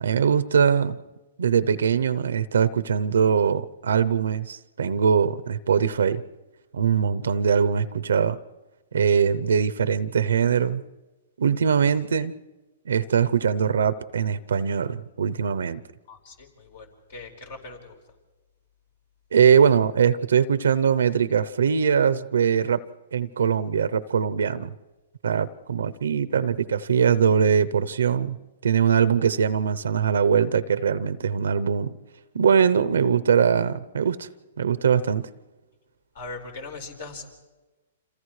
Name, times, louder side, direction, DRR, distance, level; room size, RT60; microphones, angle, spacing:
voice 1, 0.0-1.0 1.4-6.2 6.7-8.4 8.9-10.8 11.4-12.3 12.9-15.8 19.3-22.8 23.1-24.7 25.2-28.4 28.6-31.9 32.3-34.3 34.6-35.3, right 7 dB, 85° right, 14 dB, 0.7 m, -22 dB
voice 2, 16.1-17.9 36.1-37.3, left 3 dB, 60° left, 3 dB, 4.4 m, -40 dB
29.5 x 27.0 x 3.2 m, 1.2 s
hypercardioid pair, 145°, 0 cm